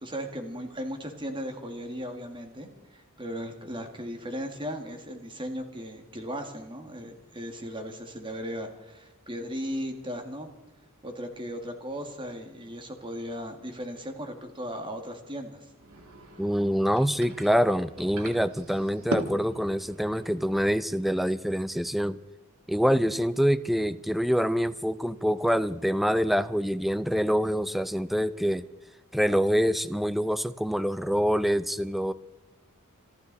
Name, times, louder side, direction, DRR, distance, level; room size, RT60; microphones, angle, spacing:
voice 1, 0.0-10.5 11.0-15.7, equal, 25° right, 5 dB, 2.1 m, -37 dB
sound 1, 15.8-20.8, right 1 dB, 70° right, 2.0 m, -39 dB
voice 2, 16.4-22.2 22.7-28.6 29.1-32.1, equal, ahead, 14 dB, 0.5 m, -25 dB
27.0 x 12.0 x 4.1 m, 1.1 s
head